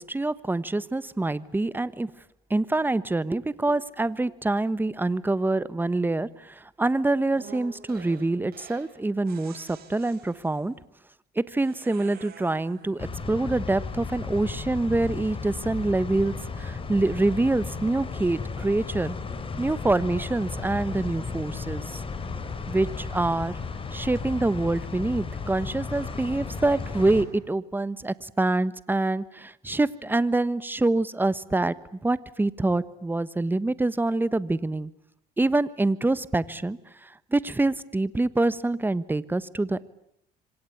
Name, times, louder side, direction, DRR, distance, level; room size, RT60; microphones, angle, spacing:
voice 1, 0.0-2.1 2.5-10.7 11.3-19.2 19.6-22.0 22.7-23.6 23.9-31.7 32.0-34.9 35.4-39.8, right 2 dB, 10° right, 16 dB, 1.3 m, -26 dB
sound 1, 7.3-8.9 9.3-10.7 11.6-13.0, right 7 dB, 65° right, 6.4 m, -48 dB
sound 2, 13.0-27.2, left 4 dB, 30° left, 4.8 m, -34 dB
27.0 x 25.5 x 8.7 m, 0.74 s
cardioid pair, 110°, 17 cm